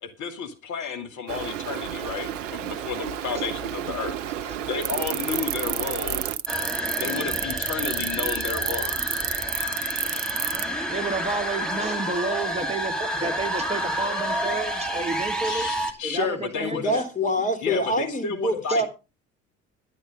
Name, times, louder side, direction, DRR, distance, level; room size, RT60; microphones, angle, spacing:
voice 1, 0.0-6.3 7.0-9.3 15.4-17.0 17.6-18.9, left 6 dB, 50° left, 7 dB, 2.4 m, -32 dB
Stream, 1.3-6.4, right 10 dB, 75° right, 0.7 m, -32 dB
voice 2, 4.3-4.6 5.8-5.9 10.9-15.7 16.0-17.1 18.7-18.8, right 3 dB, 15° right, 6 dB, 1.8 m, -31 dB
sound 1, 4.8-10.6, right 11 dB, 40° right, 0.8 m, -28 dB
sound 2, 6.5-15.9, equal, ahead, 2.9 m, -29 dB
voice 3, 16.6-18.9, equal, 20° left, 7 dB, 3.2 m, -25 dB
11.5 x 9.8 x 5.1 m, 0.30 s
figure-of-eight pair, 55°, 38 cm